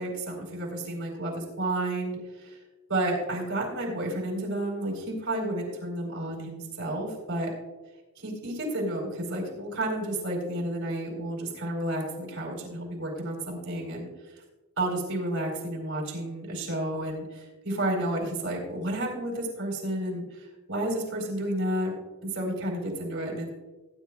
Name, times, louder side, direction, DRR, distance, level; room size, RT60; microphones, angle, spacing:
voice 1, 0.0-2.6 2.9-7.5 8.2-14.1 14.8-21.9 22.2-23.5, right 1 dB, 70° right, -2 dB, 4.2 m, -31 dB
19.0 x 9.7 x 2.4 m, 1.2 s
head